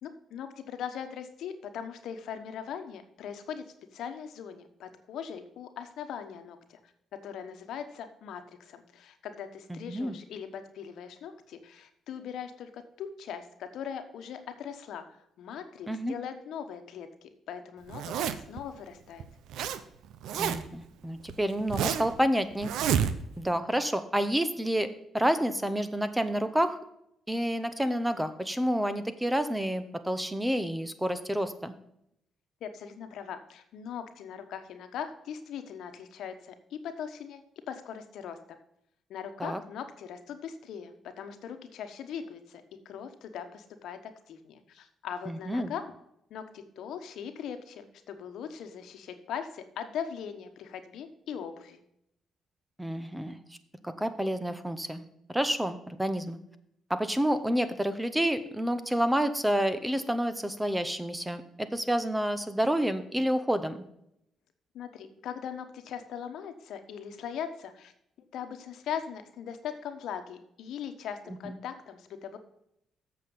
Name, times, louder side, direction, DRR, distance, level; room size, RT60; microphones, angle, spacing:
voice 1, 0.0-3.7 3.9-6.8 7.2-19.2 32.6-38.6 39.1-44.0 44.3-45.8 46.3-51.8 64.7-67.9 68.3-72.4, left 8 dB, 75° left, 8 dB, 1.2 m, -40 dB
voice 2, 9.7-10.1 15.9-16.1 20.4-22.7 23.4-24.9 25.1-26.8 27.3-31.7 39.4-39.6 45.3-45.7 52.8-53.4 53.8-55.0 55.3-56.4 56.9-63.8 71.4-71.5, equal, 10° right, 11 dB, 0.9 m, -29 dB
Zipper (clothing), 17.9-18.6 19.2-19.8 20.0-20.8 21.3-22.2 22.6-23.4, right 8 dB, 85° right, 0.7 m, -29 dB
7.8 x 6.7 x 5.4 m, 0.76 s
cardioid pair, 90°, 0 cm